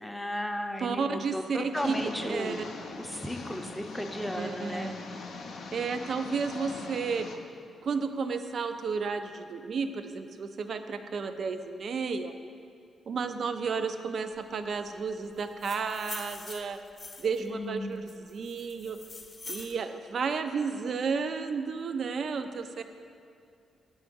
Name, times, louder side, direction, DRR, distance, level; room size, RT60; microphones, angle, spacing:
voice 1, 0.0-1.4 1.7-2.6 2.9-5.0 17.4-18.0, equal, 5° left, 4 dB, 0.5 m, -35 dB
voice 2, 0.8-2.6 4.4-5.0 5.7-7.3 7.8-12.3 13.1-16.8 17.2-19.0 19.5-22.8, right 5 dB, 60° right, 9 dB, 0.3 m, -32 dB
sound 1, 1.7-7.4, left 3 dB, 75° left, 0.5 m, -42 dB
sound 2, 15.4-17.5 18.1-19.8, left 3 dB, 35° left, 0.7 m, -44 dB
5.9 x 3.6 x 5.2 m, 2.3 s
supercardioid pair, 60°, 0 cm